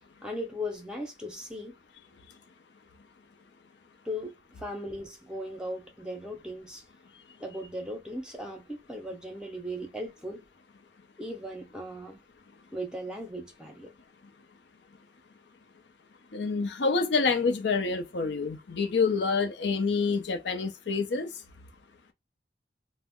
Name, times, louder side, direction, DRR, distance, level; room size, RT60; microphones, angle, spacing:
voice 1, 0.2-1.8 4.0-6.8 7.4-10.4 11.2-12.2 12.7-13.9, equal, 5° right, 0.7 m, -37 dB
voice 2, 16.3-21.3, left 4 dB, 75° left, 0.6 m, -27 dB
2.3 x 2.1 x 3.6 m
head